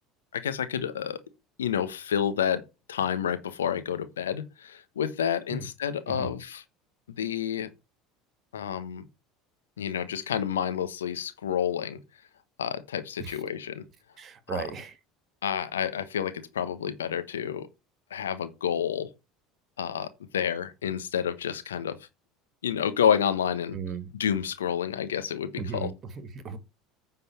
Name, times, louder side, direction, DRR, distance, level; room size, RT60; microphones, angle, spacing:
voice 1, 0.3-1.2 1.6-2.6 2.9-6.6 7.2-7.7 8.5-9.0 9.8-12.0 12.6-13.8 14.5-14.6 15.4-17.7 18.1-19.1 19.8-22.0 22.6-23.8 24.2-25.9, left 8 dB, 80° left, 1.1 m, -29 dB
voice 2, 6.1-6.4 13.2-13.4 14.2-15.0 23.7-24.1 25.6-26.6, right 5 dB, 40° right, 1.9 m, -36 dB
9.6 x 4.1 x 7.0 m
hypercardioid pair, 70°, 0 cm